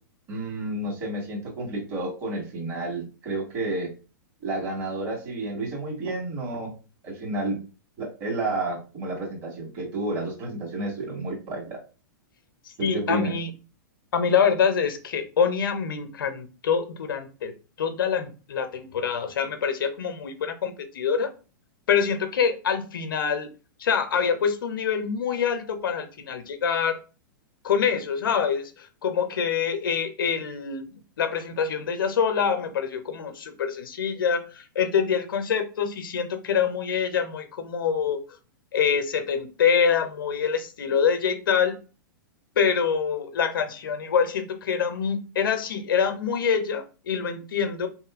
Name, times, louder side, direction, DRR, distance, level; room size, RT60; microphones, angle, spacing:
voice 1, 0.3-3.9 4.4-6.7 7.0-7.6 8.0-11.8 12.8-13.3, right 2 dB, 40° right, -1 dB, 1.7 m, -30 dB
voice 2, 12.7-13.5 14.1-17.5 17.8-21.3 21.9-23.5 23.8-27.0 27.6-38.2 38.7-41.8 42.6-47.9, left 7 dB, 75° left, 8 dB, 0.6 m, -25 dB
3.0 x 2.7 x 2.4 m, 0.34 s
hypercardioid pair, 115°, 11 cm